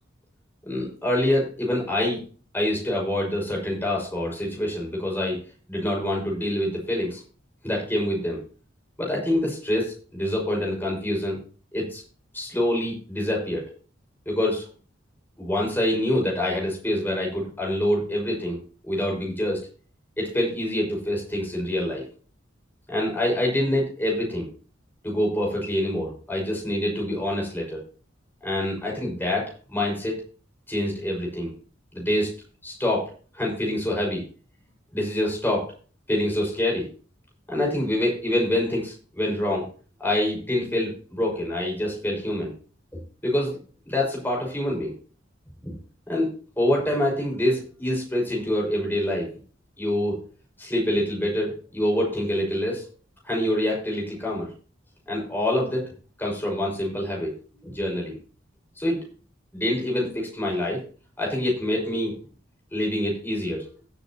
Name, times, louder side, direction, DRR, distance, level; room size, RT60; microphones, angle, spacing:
voice 1, 0.6-2.2 2.5-5.4 5.7-7.2 7.6-8.4 9.0-11.4 11.7-12.0 12.3-13.7 14.3-14.6 15.4-18.6 18.8-19.6 20.2-22.0 22.9-24.5 25.0-27.8 28.4-30.2 30.7-31.5 31.9-32.3 32.6-34.2 34.9-35.6 36.1-36.9 37.5-39.7 40.0-42.5 43.2-43.6 43.9-44.9 45.6-45.7 46.1-49.3 49.8-50.3 50.6-52.9 53.2-54.5 55.1-55.8 56.2-57.3 57.6-58.2 58.8-59.0 59.5-60.8 61.2-62.1 62.7-63.7, left 1 dB, 10° left, -1 dB, 5.7 m, -26 dB
16.5 x 8.4 x 3.0 m, 0.39 s
head